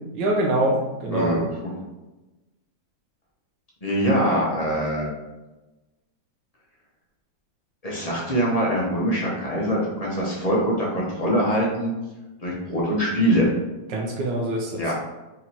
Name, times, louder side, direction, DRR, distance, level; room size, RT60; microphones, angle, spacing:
voice 1, 0.1-1.4 13.9-14.9, right 1 dB, 85° right, -2 dB, 1.3 m, -24 dB
voice 2, 1.1-1.7 3.8-5.1 7.8-11.9 12.4-13.5 14.8-14.9, equal, 35° left, -5 dB, 0.6 m, -23 dB
5.0 x 3.0 x 2.8 m, 1.1 s
omnidirectional pair, 1.9 m